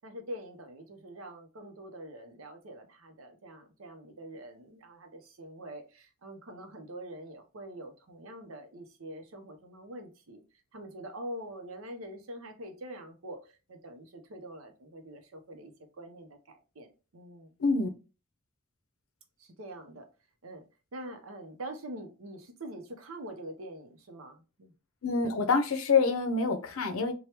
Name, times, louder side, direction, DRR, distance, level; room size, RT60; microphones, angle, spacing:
voice 1, 0.0-10.4 10.7-17.5 19.4-20.1 20.4-20.7 20.9-24.7, right 1 dB, 85° right, 0.7 m, -45 dB
voice 2, 25.0-27.1, left 4 dB, 85° left, 0.5 m, -26 dB
3.3 x 2.2 x 2.8 m
head